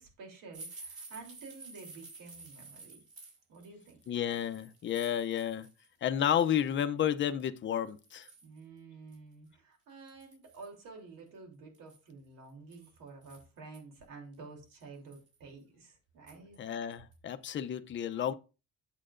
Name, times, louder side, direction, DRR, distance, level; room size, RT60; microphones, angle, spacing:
voice 1, 0.0-3.0 3.5-4.0 8.4-16.6, right 4 dB, 85° right, 3.3 m, -50 dB
sound 1, 0.5-5.9 6.2-6.8 7.4-7.5 7.9-8.6 9.1-9.2 9.5-9.6 10.1-10.7 11.7-13.8 14.3-14.4 14.8-15.4 16.3-16.6 16.9-17.1 17.5-17.6, right 3 dB, 45° right, 4.4 m, -51 dB
voice 2, 4.1-5.7 6.0-8.3 16.6-18.3, left 9 dB, 35° left, 0.6 m, -31 dB
8.7 x 7.5 x 2.5 m
cardioid pair, 170°, 32 cm